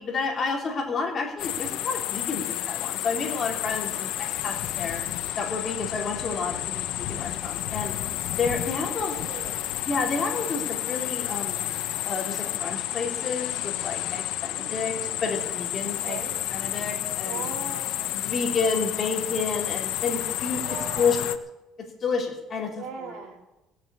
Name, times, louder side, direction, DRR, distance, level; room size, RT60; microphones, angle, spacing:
voice 1, 0.0-4.1 4.4-5.0 5.4-7.9 8.4-9.2 9.8-11.6 12.0-16.2 16.5-17.4 18.1-20.6 21.0-21.2 22.0-22.8, left 4 dB, 35° left, 1 dB, 3.4 m, -30 dB
sound 1, 1.4-21.4, left 13 dB, 70° left, 0.9 m, -31 dB
voice 2, 9.0-9.7 14.4-14.8 15.8-16.4 17.2-18.2 20.6-21.2 22.7-23.4, right 5 dB, 70° right, 2 dB, 3.2 m, -39 dB
17.5 x 7.8 x 8.4 m, 0.99 s
cardioid pair, 125°, 0 cm